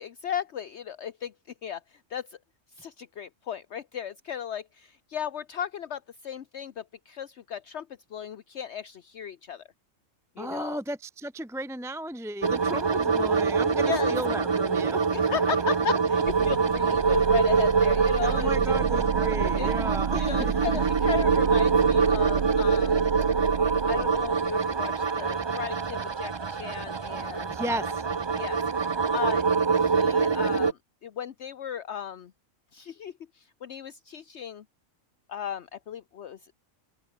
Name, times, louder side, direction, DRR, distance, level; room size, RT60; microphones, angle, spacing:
voice 1, 0.0-1.3 1.6-2.4 2.8-7.9 8.1-9.6 10.4-10.8 12.7-12.8 13.8-14.1 15.1-18.7 19.5-19.7 20.1-23.0 23.9-27.9 28.3-29.4 29.7-32.3 32.7-34.6 35.3-36.5, left 9 dB, 60° left, 1.1 m, -36 dB
voice 2, 10.4-15.2 18.2-20.5 27.5-28.0, right 1 dB, ahead, 1.0 m, -34 dB
sound 1, 12.4-30.7, right 5 dB, 35° right, 0.4 m, -25 dB
sound 2, 16.3-24.5, right 8 dB, 75° right, 1.4 m, -33 dB
open air
omnidirectional pair, 1.3 m